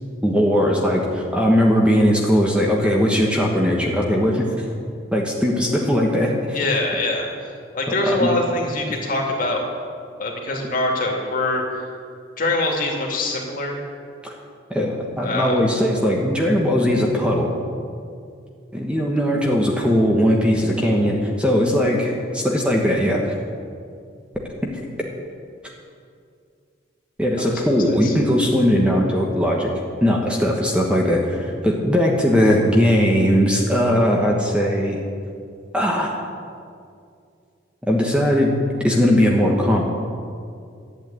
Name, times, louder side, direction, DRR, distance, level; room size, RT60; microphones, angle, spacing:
voice 1, 0.2-4.6 5.1-6.6 8.0-8.3 14.2-14.3 14.7-17.5 18.7-23.2 24.6-24.7 27.2-29.7 30.0-35.0 35.7-36.1 37.8-38.5 38.8-39.8, equal, 5° right, -1 dB, 1.3 m, -19 dB
voice 2, 6.5-9.7 10.2-11.8 12.4-13.8 15.2-15.6 27.4-28.1, left 2 dB, 45° left, 0 dB, 2.4 m, -24 dB
11.5 x 8.5 x 9.1 m, 2.3 s
head